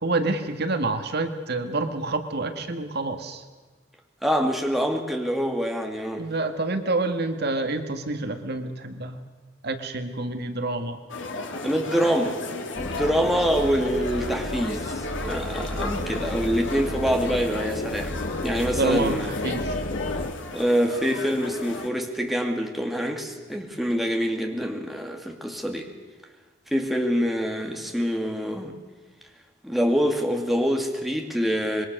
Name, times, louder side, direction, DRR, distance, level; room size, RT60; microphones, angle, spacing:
voice 1, 0.0-3.4 6.2-9.2 9.6-11.0 18.7-19.7, right 2 dB, 60° right, 7 dB, 1.9 m, -28 dB
voice 2, 4.2-6.3 11.6-12.4 12.8-14.9 15.2-18.2 18.4-19.3 20.5-25.9 26.7-28.7 29.6-31.9, equal, ahead, 2 dB, 2.5 m, -25 dB
sound 1, 11.1-21.9, left 2 dB, 75° left, 2.8 m, -34 dB
sound 2, 12.7-20.3, left 1 dB, 50° left, 1.4 m, -33 dB
26.0 x 22.5 x 6.7 m, 1.4 s
head